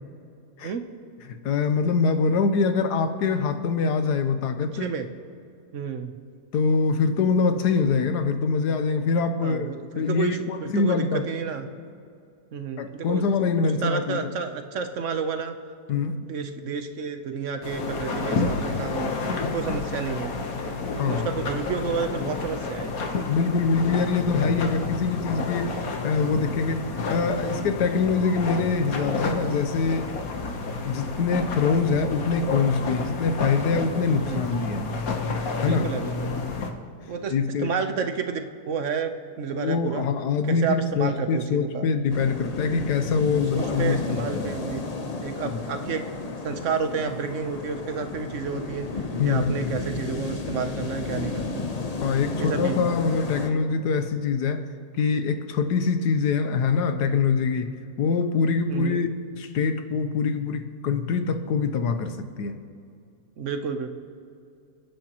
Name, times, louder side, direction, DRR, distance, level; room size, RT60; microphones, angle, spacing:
voice 1, 1.3-4.9 6.5-11.3 12.8-14.3 15.9-16.2 21.0-21.3 23.3-25.8 26.0-30.1 30.8-34.9 35.6-35.9 37.3-37.7 39.5-44.5 45.4-45.6 49.2-49.8 52.0-54.6 55.0-62.6, left 5 dB, 85° left, 8 dB, 1.5 m, -24 dB
voice 2, 4.7-5.1 5.7-6.1 9.4-11.7 12.5-13.2 13.6-15.5 15.9-19.2 19.5-20.3 21.0-22.9 34.2-34.6 35.6-36.4 37.1-37.3 37.6-40.0 40.5-41.9 43.3-44.8 45.2-46.0 46.4-48.9 49.2-51.7 52.4-52.8 58.7-59.0 63.4-63.9, right 6 dB, 55° right, 7 dB, 1.1 m, -30 dB
sound 1, 17.6-36.7, left 3 dB, 60° left, 1.5 m, -30 dB
sound 2, 42.1-53.5, left 3 dB, 35° left, 0.7 m, -32 dB
27.5 x 10.5 x 3.0 m, 2.5 s
omnidirectional pair, 1.7 m